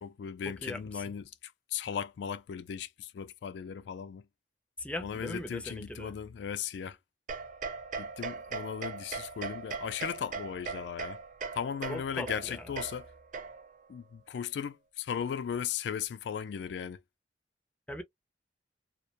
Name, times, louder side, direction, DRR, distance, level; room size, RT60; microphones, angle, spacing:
voice 1, 0.0-4.3 5.0-7.0 8.0-11.2 11.5-13.1 13.9-17.0, left 8 dB, 75° left, 0.3 m, -37 dB
voice 2, 4.8-6.1 11.9-12.3 17.9-18.0, left 1 dB, 10° left, 0.5 m, -38 dB
sound 1, 7.3-13.9, right 4 dB, 50° right, 0.4 m, -40 dB
2.2 x 2.1 x 2.8 m
head